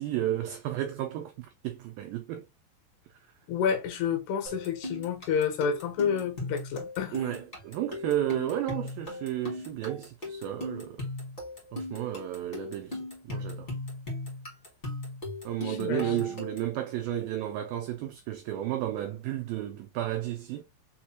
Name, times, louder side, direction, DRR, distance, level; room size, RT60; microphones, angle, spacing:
voice 1, 0.0-2.5 7.1-11.1 11.7-13.0 13.2-13.7 15.5-20.6, right 12 dB, 90° right, 2.0 m, -32 dB
voice 2, 3.5-7.2 15.6-16.4, left 7 dB, 80° left, 3.1 m, -29 dB
sound 1, 4.4-16.8, left 2 dB, 45° left, 0.7 m, -38 dB
6.3 x 2.2 x 2.8 m
omnidirectional pair, 4.7 m